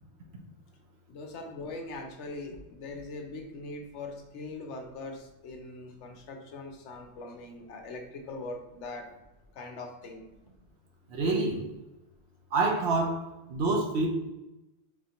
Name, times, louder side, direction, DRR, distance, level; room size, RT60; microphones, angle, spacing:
voice 1, 1.1-9.1 9.5-10.3, left 2 dB, 70° left, 4 dB, 0.9 m, -41 dB
voice 2, 11.1-11.6 12.5-13.2 13.5-14.1, right 3 dB, 65° right, 1 dB, 0.9 m, -26 dB
4.2 x 3.2 x 2.8 m, 0.98 s
omnidirectional pair, 1.3 m